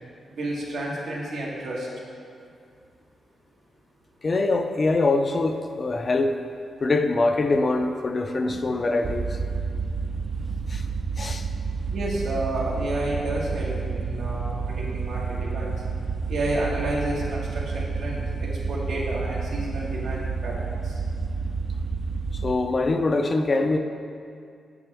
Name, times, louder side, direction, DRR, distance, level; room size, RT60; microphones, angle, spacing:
voice 1, 0.4-1.9 11.9-15.7 16.3-21.0, right 1 dB, 90° right, -5 dB, 1.5 m, -30 dB
voice 2, 4.2-6.4 6.8-9.4 10.7-10.9 11.2-11.5 22.3-23.8, left 3 dB, 35° left, 6 dB, 0.4 m, -23 dB
sound 1, 9.0-22.5, right 4 dB, 50° right, 0.3 m, -30 dB
7.0 x 6.8 x 3.4 m, 2.3 s
cardioid pair, 110°, 0 cm